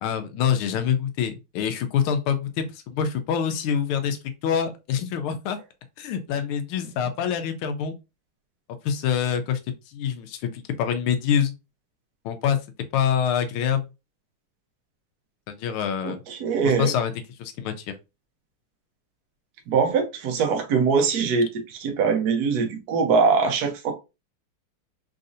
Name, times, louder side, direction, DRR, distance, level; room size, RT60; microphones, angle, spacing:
voice 1, 0.0-5.6 6.0-7.9 8.8-9.6 9.9-11.5 12.2-12.6 12.9-13.9 15.5-16.2 16.8-17.1 17.4-17.9, left 8 dB, 85° left, 1.5 m, -25 dB
voice 2, 16.0-16.9 19.7-23.9, right 5 dB, 65° right, 1.0 m, -22 dB
4.0 x 2.7 x 2.5 m
omnidirectional pair, 2.3 m